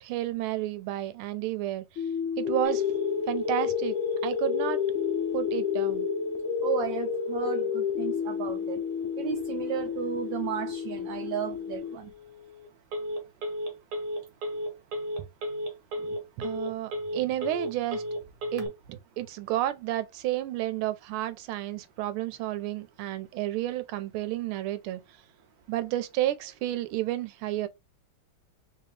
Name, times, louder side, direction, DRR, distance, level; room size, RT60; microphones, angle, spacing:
voice 1, 0.0-1.8 2.4-2.8 3.3-3.9 4.2-4.8 5.3-6.1 16.0-18.0 18.5-25.0 25.7-27.7, right 14 dB, 90° right, 1.5 m, -31 dB
sound 1, 2.0-12.0, left 7 dB, 85° left, 1.6 m, -31 dB
Telephone, 2.6-18.7, left 3 dB, 55° right, 1.4 m, -36 dB
voice 2, 6.6-8.8 9.2-12.0, right 9 dB, 75° right, 1.1 m, -33 dB
3.7 x 2.8 x 3.1 m
omnidirectional pair, 2.3 m